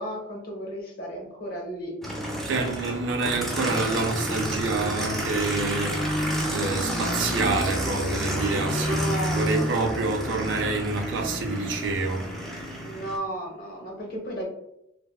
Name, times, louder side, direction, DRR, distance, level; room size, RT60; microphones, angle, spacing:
voice 1, 0.0-1.9 2.6-2.7 8.6-9.9 12.8-14.5, equal, 50° left, 0.8 m, -34 dB
Aircraft, 2.0-13.2, equal, ahead, 0.5 m, -29 dB
voice 2, 2.5-6.0 6.5-12.3, right 3 dB, 65° right, 0.4 m, -27 dB
3.3 x 2.1 x 2.2 m
head